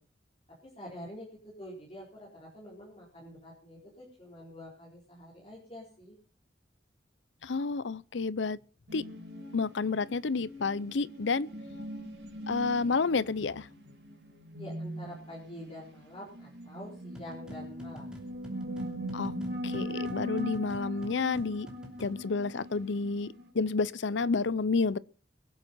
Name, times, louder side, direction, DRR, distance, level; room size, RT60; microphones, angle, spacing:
voice 1, 0.6-6.2 14.6-18.2, equal, 30° left, 4.2 m, -46 dB
voice 2, 7.4-8.6 8.9-9.0 9.5-11.5 12.5-13.7 19.1-19.3 19.6-21.7 22.0-25.0, left 4 dB, 80° left, 0.6 m, -30 dB
sound 1, 8.9-23.5, equal, 70° right, 4.7 m, -40 dB
sound 2, 17.1-22.3, left 1 dB, 5° right, 2.9 m, -49 dB
23.0 x 8.0 x 5.5 m
head